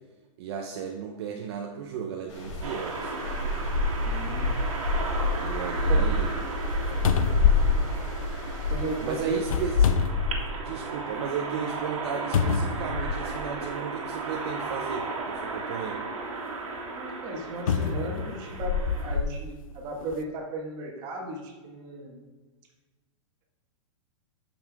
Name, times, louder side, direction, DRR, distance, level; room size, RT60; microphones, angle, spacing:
voice 1, 0.4-3.2 4.0-4.3 5.4-6.4 9.0-9.9 10.6-16.0, right 7 dB, 50° right, 1 dB, 0.8 m, -34 dB
sound 1, 2.3-9.8, left 1 dB, 65° left, 3.1 m, -29 dB
sound 2, 2.6-19.2, right 3 dB, 90° right, 2.0 m, -35 dB
voice 2, 4.0-4.6 5.9-6.1 8.7-9.4 16.9-22.2, right 1 dB, 25° right, -1 dB, 1.5 m, -35 dB
sound 3, 6.6-6.7 7.0-8.7 9.4-10.8 11.3-11.4 12.3-13.5 14.4-14.5 17.7-19.3 20.0-20.1, left 6 dB, 85° left, 0.7 m, -25 dB
12.0 x 5.7 x 3.5 m, 1.2 s
supercardioid pair, 165°, 17 cm